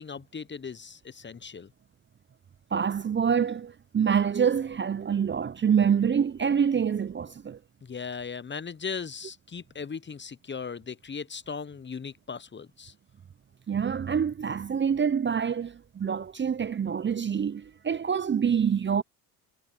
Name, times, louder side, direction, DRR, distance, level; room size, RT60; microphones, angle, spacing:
voice 1, 0.0-1.7 7.8-12.9, left 6 dB, 25° left, 1.1 m, -38 dB
voice 2, 2.7-7.6 13.7-19.0, right 7 dB, 25° right, 0.8 m, -26 dB
hypercardioid pair, 55°, 45 cm